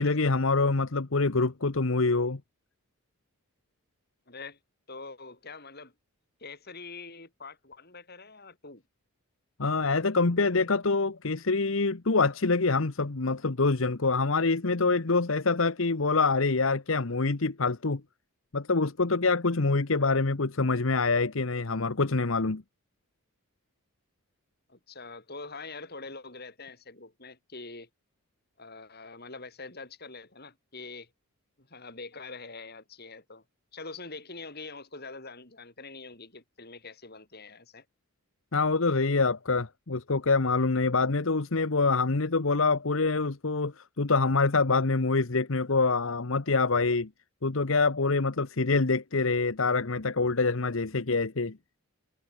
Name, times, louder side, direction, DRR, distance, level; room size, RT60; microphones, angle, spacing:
voice 1, 0.0-2.4 9.6-18.0 18.5-22.6 38.5-47.1 47.4-51.6, left 3 dB, 65° left, 1.1 m, -25 dB
voice 2, 4.3-4.6 4.9-5.9 6.4-8.8 24.7-27.9 28.6-31.1 31.6-33.4 33.7-37.9, left 3 dB, 45° left, 5.9 m, -44 dB
head